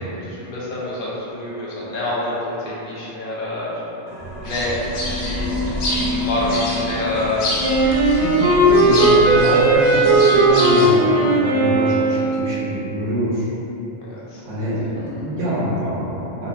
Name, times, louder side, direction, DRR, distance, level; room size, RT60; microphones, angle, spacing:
voice 1, 0.0-3.8 4.4-4.7 5.1-7.4 8.9-9.6 14.1-14.4, left 1 dB, 55° left, -7 dB, 0.7 m, -27 dB
sound 1, 4.1-8.7, left 2 dB, 65° right, 0.8 m, -29 dB
sound 2, 4.5-10.9, left 1 dB, 90° left, 0.9 m, -28 dB
Wind instrument woodwind instrument, 7.6-12.6, right 2 dB, 35° right, 0.5 m, -16 dB
voice 2, 8.4-13.5 14.5-16.5, equal, 90° right, -8 dB, 1.0 m, -24 dB
2.5 x 2.4 x 2.4 m, 3.0 s
omnidirectional pair, 1.2 m